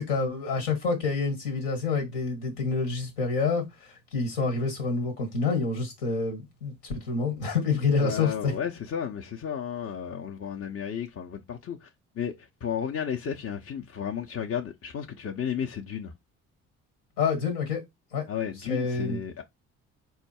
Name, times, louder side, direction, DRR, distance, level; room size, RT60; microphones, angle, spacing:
voice 1, 0.0-3.6 4.1-8.5 17.2-17.8 18.1-18.2 18.7-19.2, left 4 dB, 85° left, 1.6 m, -27 dB
voice 2, 8.0-11.9 12.2-16.1 18.3-19.4, left 8 dB, 40° left, 0.8 m, -33 dB
4.3 x 2.4 x 4.3 m
hypercardioid pair, 50°, 36 cm